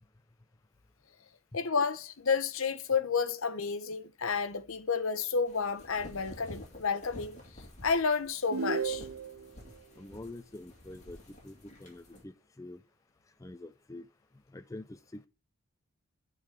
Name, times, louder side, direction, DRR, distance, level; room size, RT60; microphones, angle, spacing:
voice 1, 1.5-7.4 7.8-9.1, left 5 dB, 70° left, 0.9 m, -31 dB
sound 1, 5.5-12.2, left 1 dB, 30° left, 2.4 m, -51 dB
sound 2, 8.5-9.6, right 6 dB, 70° right, 0.5 m, -34 dB
voice 2, 10.0-11.2 11.4-12.8 13.4-14.1 14.5-15.3, left 2 dB, 15° left, 0.4 m, -46 dB
9.4 x 4.0 x 7.2 m
head